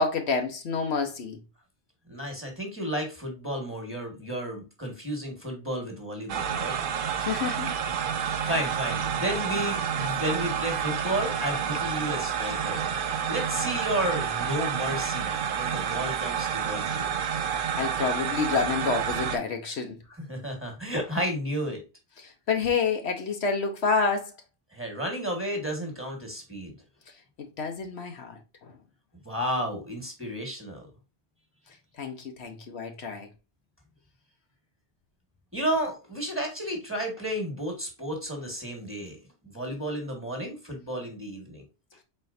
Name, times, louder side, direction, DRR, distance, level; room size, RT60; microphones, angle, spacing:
voice 1, 0.0-1.4 7.2-7.7 8.4-8.6 17.8-20.0 22.2-24.3 27.4-28.7 32.0-33.3, left 4 dB, 70° left, 1.1 m, -28 dB
voice 2, 2.1-6.8 8.2-12.9 13.3-17.1 20.3-21.8 24.7-26.7 29.2-30.9 35.5-39.2 39.4-41.6, right 1 dB, 10° right, 1.5 m, -32 dB
sound 1, 6.3-19.4, right 7 dB, 55° right, 0.7 m, -29 dB
4.5 x 4.3 x 2.5 m
omnidirectional pair, 1.2 m